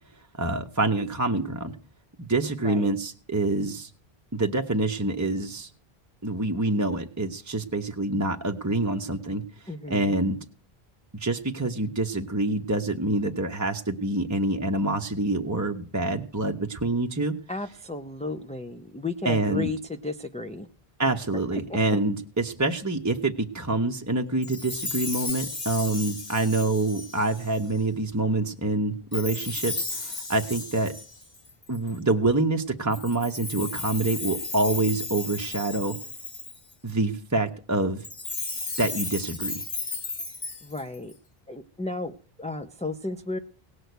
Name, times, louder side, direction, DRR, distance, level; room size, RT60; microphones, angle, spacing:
voice 1, 0.4-1.7 2.2-3.9 4.3-5.7 6.2-9.4 9.9-10.4 11.2-17.3 19.2-19.7 21.0-30.9 31.7-36.0 36.8-38.0 38.8-39.5, right 2 dB, 20° right, 3 dB, 0.8 m, -26 dB
voice 2, 9.7-10.1 17.5-19.8 20.0-20.7 21.5-21.8 40.6-41.1 41.5-43.4, left 3 dB, 10° left, 6 dB, 0.4 m, -33 dB
Chime, 24.4-27.8 29.1-32.0 32.9-36.7 38.0-41.1, left 3 dB, 45° left, 1.6 m, -34 dB
18.0 x 6.4 x 8.0 m, 0.43 s
omnidirectional pair, 1.0 m